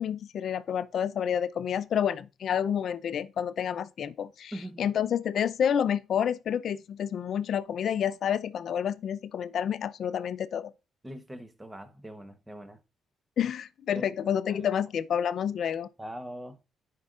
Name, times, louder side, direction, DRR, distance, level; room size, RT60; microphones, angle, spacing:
voice 1, 0.0-10.7 13.4-15.9, left 8 dB, 60° left, 0.4 m, -29 dB
voice 2, 4.5-4.8 11.0-12.8 13.9-14.1 14.5-14.8 16.0-16.6, equal, 15° right, 0.9 m, -42 dB
10.5 x 4.6 x 2.4 m
cardioid pair, 90°, 0 cm